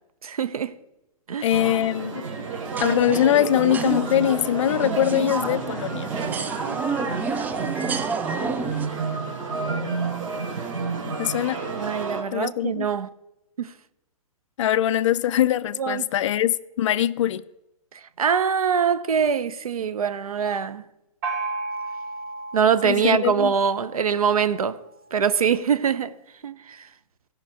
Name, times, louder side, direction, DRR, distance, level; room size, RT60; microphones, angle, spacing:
voice 1, 0.2-0.7 1.3-1.5 11.7-13.1 13.6-13.7 15.8-16.1 18.2-20.8 22.5-24.8 25.1-26.1 26.4-26.9, right 7 dB, 85° right, 0.8 m, -23 dB
voice 2, 1.4-2.3 2.8-6.1 11.2-11.6 12.3-12.9 14.6-17.4 22.8-23.5, left 11 dB, 60° left, 0.5 m, -22 dB
sound 1, 1.5-12.2, right 4 dB, 60° right, 3.6 m, -30 dB
sound 2, 2.7-8.9, right 5 dB, 10° right, 0.3 m, -31 dB
Gong, 21.2-24.7, right 3 dB, 35° right, 2.7 m, -34 dB
16.0 x 5.8 x 4.9 m
hypercardioid pair, 130°, 18 cm